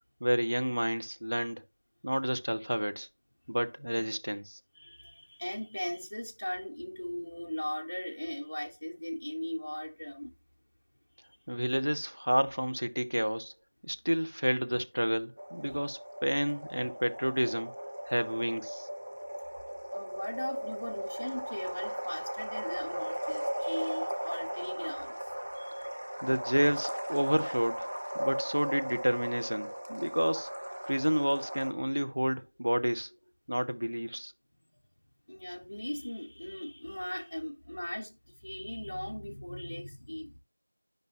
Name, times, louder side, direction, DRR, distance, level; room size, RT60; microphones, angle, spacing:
voice 1, 0.2-1.6 2.0-3.1 3.5-4.6 11.5-13.5 13.8-17.7 18.1-18.9 26.2-27.9 28.1-30.5 30.9-33.1 33.5-34.3, equal, 85° right, 0.7 m, -30 dB
voice 2, 4.7-10.3 11.1-11.5 19.9-25.9 34.5-34.8 35.3-40.4, left 1 dB, 35° left, 0.6 m, -39 dB
sound 1, 15.4-31.7, equal, 40° right, 0.6 m, -37 dB
9.2 x 5.3 x 2.8 m
figure-of-eight pair, 180°, 0 cm